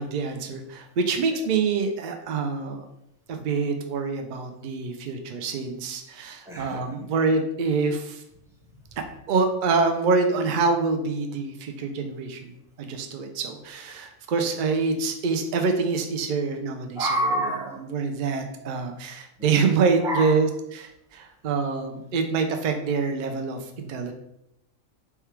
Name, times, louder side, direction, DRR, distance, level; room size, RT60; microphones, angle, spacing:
voice 1, 0.0-2.8 3.3-8.2 9.3-17.1 17.9-24.1, right 4 dB, 90° right, 4 dB, 0.4 m, -26 dB
voice 2, 6.5-6.8 17.0-17.8 19.4-19.7 20.0-20.4, right 1 dB, 5° right, -3 dB, 0.4 m, -28 dB
3.5 x 2.3 x 4.4 m, 0.82 s
omnidirectional pair, 1.4 m